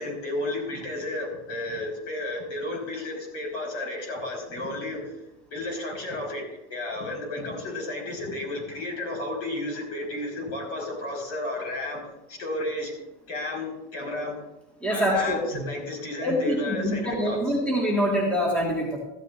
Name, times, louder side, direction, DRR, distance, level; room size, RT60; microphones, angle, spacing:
voice 1, 0.0-5.1 5.5-12.0 12.3-12.9 13.3-14.3 14.9-17.4, left 2 dB, 45° left, 0 dB, 4.9 m, -32 dB
voice 2, 14.8-15.7 16.2-19.0, equal, 5° left, -3 dB, 2.0 m, -25 dB
15.5 x 13.5 x 2.6 m, 0.95 s
supercardioid pair, 145°, 34 cm